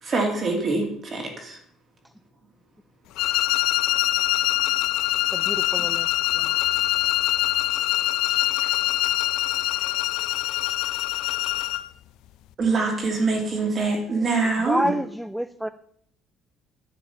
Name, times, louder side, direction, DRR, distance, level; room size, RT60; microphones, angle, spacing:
voice 1, 0.0-1.6 12.6-14.9, right 3 dB, 30° right, 2 dB, 2.4 m, -24 dB
sound 1, 3.2-11.9, left 15 dB, 75° left, 0.5 m, -24 dB
voice 2, 5.3-6.1 6.4-6.7 14.7-15.7, equal, ahead, 13 dB, 0.3 m, -28 dB
voice 3, 6.5-7.2 7.4-8.9 9.5-11.0, left 5 dB, 35° left, 2 dB, 2.4 m, -56 dB
10.5 x 7.6 x 5.6 m, 0.67 s
cardioid pair, 160°, 0 cm